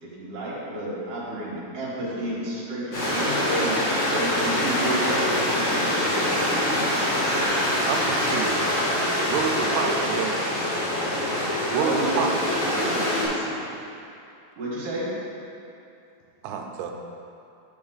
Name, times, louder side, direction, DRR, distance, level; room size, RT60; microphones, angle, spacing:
voice 1, 0.0-7.6 8.1-8.3 11.7-12.1 14.6-15.1, right 1 dB, 65° right, -7 dB, 2.9 m, -31 dB
Stream, 2.9-13.3, left 1 dB, 45° left, 2.4 m, -24 dB
voice 2, 7.9-8.8 9.3-10.3 11.7-12.4 16.4-16.9, right 6 dB, 85° right, 3 dB, 2.6 m, -28 dB
voice 3, 9.5-10.0 11.9-13.7, left 1 dB, 75° left, -4 dB, 3.1 m, -34 dB
10.0 x 5.4 x 3.9 m, 2.6 s
omnidirectional pair, 4.5 m